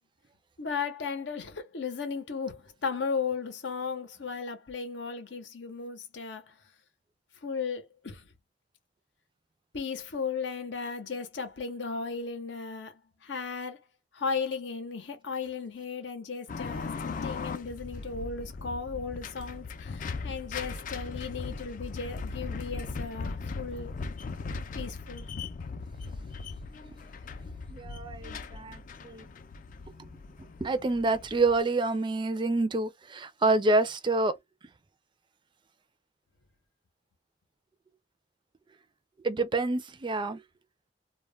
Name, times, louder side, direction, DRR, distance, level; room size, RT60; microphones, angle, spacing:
voice 1, 0.6-6.5 7.4-8.2 9.7-13.8 14.1-23.9 24.7-25.3, left 5 dB, 80° left, 0.7 m, -35 dB
sound 1, 16.5-31.6, left 4 dB, 45° left, 0.4 m, -39 dB
voice 2, 27.7-29.3 30.0-30.1 30.6-34.4 39.2-40.4, right 2 dB, 25° right, 0.4 m, -27 dB
2.2 x 2.1 x 3.2 m
head